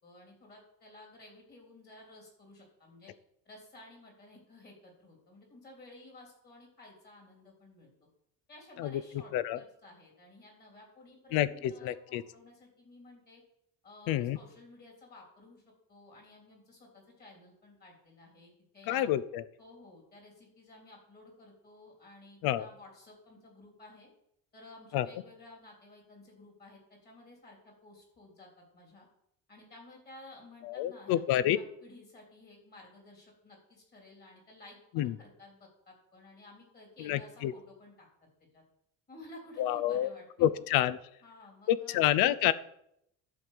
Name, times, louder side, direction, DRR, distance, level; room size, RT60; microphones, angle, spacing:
voice 1, 0.0-3.1 3.4-7.9 8.5-13.4 13.8-15.6 15.9-19.1 19.6-24.1 24.5-29.1 29.5-38.1 38.5-38.6 39.1-40.6 41.2-42.1, left 2 dB, 30° left, 0 dB, 3.5 m, -54 dB
voice 2, 11.3-12.2 14.1-14.4 18.9-19.4 22.4-22.7 24.9-25.1 30.6-31.6 35.0-35.1 37.0-37.5 39.6-40.1 40.4-41.0 41.7-42.5, left 13 dB, 85° left, 17 dB, 0.7 m, -28 dB
11.5 x 5.2 x 7.5 m, 0.76 s
cardioid pair, 165°, 35 cm